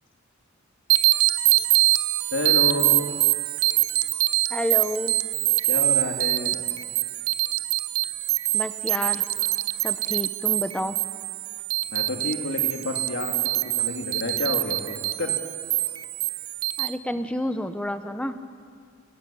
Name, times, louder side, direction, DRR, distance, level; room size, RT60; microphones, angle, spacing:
sound 1, 0.9-16.9, right 18 dB, 85° right, 0.7 m, -24 dB
voice 1, 2.3-3.0 5.7-6.6 11.9-13.3 13.8-15.3, left 2 dB, 65° left, 2 dB, 2.5 m, -29 dB
voice 2, 4.5-5.1 8.5-9.2 9.8-11.0 16.8-18.4, left 1 dB, 5° left, 9 dB, 0.8 m, -29 dB
28.5 x 12.0 x 8.5 m, 2.2 s
head